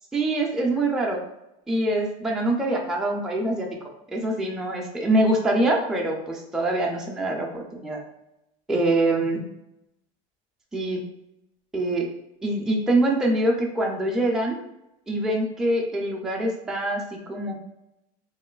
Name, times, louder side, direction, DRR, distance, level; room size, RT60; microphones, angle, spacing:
voice 1, 0.1-1.2 1.7-3.7 4.1-8.0 8.7-9.4 10.7-11.0 11.7-12.1 12.4-14.6 15.1-17.6, right 1 dB, 5° right, -1 dB, 0.4 m, -24 dB
3.0 x 2.5 x 2.3 m, 0.85 s
supercardioid pair, 130°, 18 cm